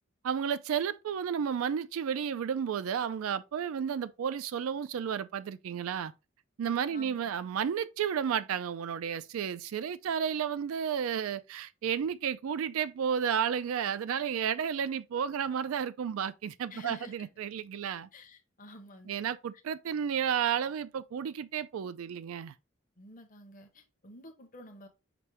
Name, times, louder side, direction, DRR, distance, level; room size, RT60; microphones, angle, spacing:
voice 1, 0.2-6.1 6.6-18.1 19.1-22.5, right 8 dB, 80° right, 0.3 m, -32 dB
voice 2, 6.9-7.5 16.7-17.3 18.1-19.2 23.0-24.9, left 1 dB, 40° left, 0.7 m, -50 dB
5.1 x 2.1 x 4.3 m
head